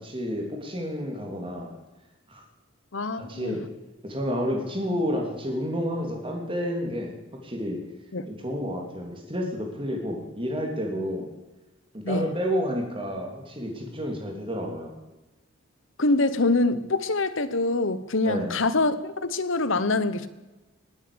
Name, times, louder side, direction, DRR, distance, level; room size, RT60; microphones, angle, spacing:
voice 1, 0.0-1.7 2.3-2.4 3.3-3.6 4.0-7.2 7.4-7.8 8.3-11.3 11.9-15.0 18.2-18.6, equal, 25° right, 1 dB, 3.2 m, -30 dB
voice 2, 2.9-3.6 8.1-8.2 12.0-12.3 16.0-20.3, left 2 dB, 65° left, 13 dB, 1.1 m, -25 dB
20.0 x 8.9 x 7.0 m, 1.1 s
head